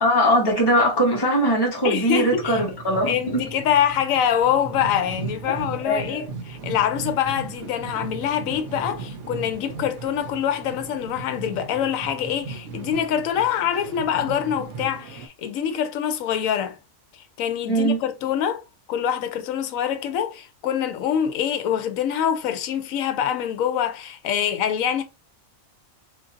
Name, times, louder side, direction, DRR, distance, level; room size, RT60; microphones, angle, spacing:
voice 1, 0.0-3.4 5.8-6.2 17.7-18.0, equal, 20° left, 1.1 m, -21 dB
voice 2, 1.8-2.6 3.1-16.8 17.4-18.6 18.9-25.0, left 9 dB, 75° left, 1.0 m, -25 dB
sound 1, 2.0-15.3, right 4 dB, 65° right, 1.0 m, -37 dB
3.7 x 2.6 x 2.5 m
omnidirectional pair, 1.5 m